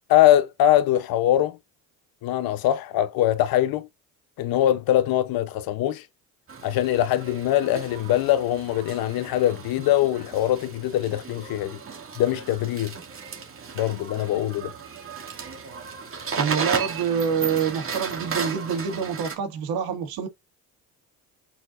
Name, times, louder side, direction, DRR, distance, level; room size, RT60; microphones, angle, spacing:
voice 1, 0.1-1.6 2.2-3.9 4.4-6.0 6.6-11.8 12.2-12.9 13.7-14.7, left 12 dB, 65° left, 1.0 m, -22 dB
sound 1, 6.5-19.4, right 5 dB, 35° right, 2.3 m, -35 dB
voice 2, 16.4-20.3, right 7 dB, 70° right, 2.2 m, -26 dB
8.8 x 4.4 x 2.6 m
supercardioid pair, 95°, 38 cm